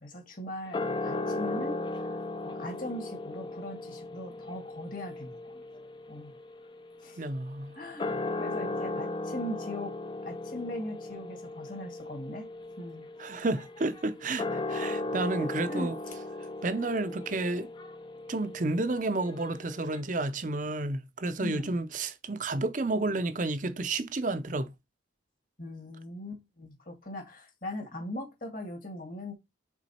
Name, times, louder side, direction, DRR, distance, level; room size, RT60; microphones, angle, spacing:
voice 1, 0.0-2.2 2.4-5.4 6.1-6.3 7.0-7.2 7.8-9.9 10.2-12.5 12.8-13.1 15.4-15.9 21.4-21.7 25.6-29.3, left 1 dB, 45° left, 2.1 m, -40 dB
sound 1, 0.7-7.4 7.9-20.0, left 2 dB, 25° left, 0.5 m, -37 dB
voice 2, 7.2-7.8 13.2-16.0 16.6-17.7 18.3-24.7, right 2 dB, 40° right, 0.6 m, -31 dB
6.0 x 3.9 x 4.2 m
head